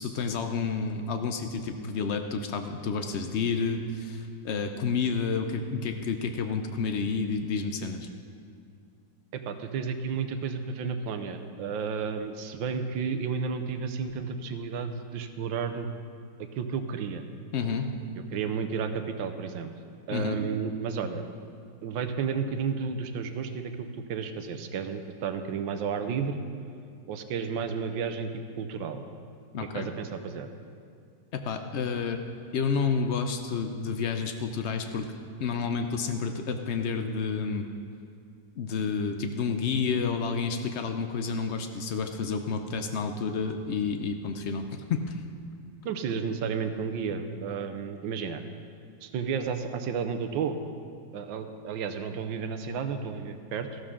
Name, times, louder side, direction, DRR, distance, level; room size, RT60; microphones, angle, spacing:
voice 1, 0.0-8.1 17.5-17.9 20.1-20.4 29.5-29.9 31.3-32.2 32.5-35.1 35.4-37.7 38.6-45.2, left 5 dB, 85° left, 6 dB, 0.6 m, -30 dB
voice 2, 9.3-15.9 16.4-17.2 18.3-19.7 20.1-21.2 21.8-26.4 27.1-28.3 28.6-29.0 29.7-30.5 45.8-48.4 49.0-50.6 51.1-53.8, right 6 dB, 90° right, 8 dB, 1.5 m, -32 dB
14.0 x 13.0 x 3.7 m, 2.3 s
omnidirectional pair, 2.0 m